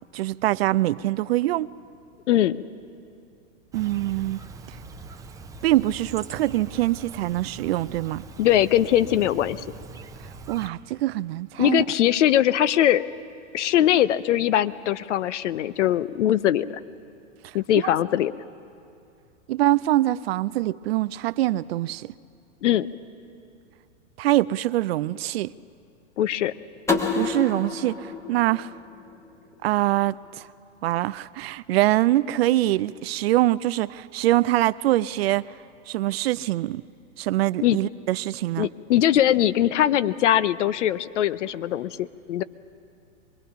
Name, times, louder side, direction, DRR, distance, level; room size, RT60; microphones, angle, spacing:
voice 1, 0.1-1.7 3.7-4.4 5.6-8.2 10.5-11.8 17.4-17.5 19.5-22.1 24.2-25.5 27.1-28.7 29.6-30.5 30.8-35.4 35.9-36.8 37.2-38.7, right 16 dB, 55° right, 18 dB, 0.4 m, -24 dB
voice 2, 2.3-2.6 8.4-9.6 11.6-13.0 13.5-16.7 17.5-18.3 22.6-22.9 26.2-26.5 37.6-37.8 38.6-42.4, left 11 dB, 65° left, 17 dB, 0.7 m, -21 dB
Chirp tweet, 3.7-10.7, right 3 dB, 10° right, 0.6 m, -42 dB
sound 1, 26.9-29.7, left 4 dB, 5° left, 1.1 m, -29 dB
24.5 x 20.5 x 5.7 m, 2.5 s
hypercardioid pair, 120°, 38 cm